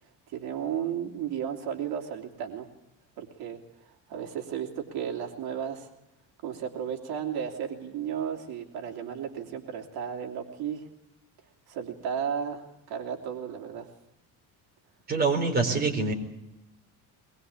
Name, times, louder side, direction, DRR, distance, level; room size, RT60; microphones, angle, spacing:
voice 1, 0.3-2.7 3.2-5.9 6.4-10.9 11.7-13.9, right 8 dB, 70° right, 2 dB, 3.1 m, -34 dB
voice 2, 15.1-16.1, right 4 dB, 25° right, 1 dB, 4.4 m, -25 dB
23.0 x 21.5 x 8.5 m, 0.85 s
cardioid pair, 160°, 40 cm